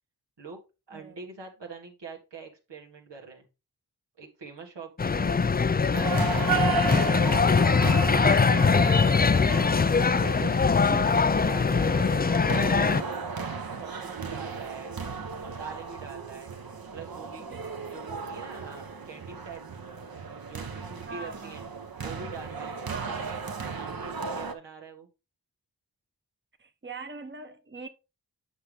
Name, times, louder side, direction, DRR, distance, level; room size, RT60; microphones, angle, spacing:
voice 1, 0.9-3.5 4.2-7.4 7.8-9.6 10.0-12.2 12.7-13.0 13.7-15.0 15.4-16.5 16.9-17.5 17.9-19.6 20.5-21.7 22.0-22.7 23.2-25.1, right 5 dB, 90° right, 1.8 m, -44 dB
sound 1, 5.0-13.0, left 5 dB, 25° left, 0.4 m, -22 dB
sound 2, 5.9-24.5, right 4 dB, 55° right, 1.0 m, -34 dB
voice 2, 8.4-8.8 10.9-11.2 17.4-17.6 21.1-21.6 22.9-23.2 26.6-27.9, right 4 dB, 25° right, 0.9 m, -41 dB
8.0 x 5.5 x 3.4 m
cardioid pair, 40°, 41 cm